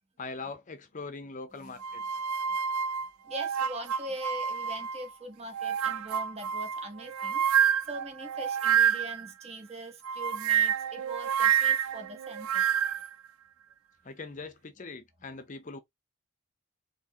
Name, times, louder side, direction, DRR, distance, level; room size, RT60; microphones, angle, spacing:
voice 1, 0.2-2.0 14.0-15.8, left 3 dB, 35° left, 0.6 m, -41 dB
sound 1, 1.8-5.1 5.5-9.3 10.0-13.1, right 8 dB, 80° right, 0.4 m, -28 dB
voice 2, 3.2-12.7, right 1 dB, 30° right, 1.0 m, -42 dB
4.5 x 3.2 x 2.8 m
head